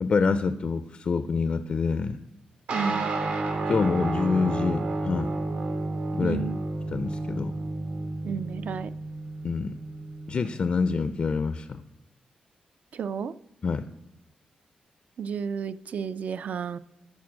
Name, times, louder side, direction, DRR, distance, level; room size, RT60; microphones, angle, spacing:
voice 1, 0.0-2.2 3.7-5.3 6.1-6.5 6.9-7.5 9.4-9.8 10.3-11.8 13.6-13.9, left 5 dB, 45° left, 12 dB, 0.4 m, -26 dB
voice 2, 2.7-3.1 6.2-6.6 8.2-8.9 12.9-13.3 15.2-16.8, right 7 dB, 65° right, 15 dB, 0.3 m, -32 dB
sound 1, 2.7-10.5, right 2 dB, 80° right, 1.7 m, -31 dB
10.5 x 4.3 x 6.1 m, 0.87 s
wide cardioid pair, 120°, 3 cm